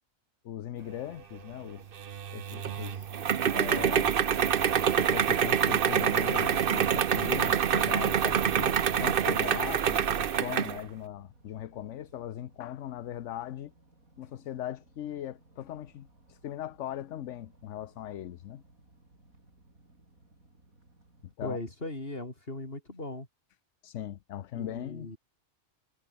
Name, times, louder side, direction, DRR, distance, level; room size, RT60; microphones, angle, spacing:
voice 1, 0.4-1.9 2.3-3.1 3.5-4.1 4.8-13.7 14.2-18.6 21.2-21.6 23.8-25.1, left 11 dB, 65° left, 1.0 m, -39 dB
sound 1, 2.0-10.8, right 8 dB, 50° right, 0.9 m, -26 dB
sound 2, 5.4-21.3, right 2 dB, 85° right, 6.9 m, -62 dB
voice 2, 21.4-23.3 24.5-25.2, left 2 dB, 40° left, 5.1 m, -38 dB
omnidirectional pair, 1.4 m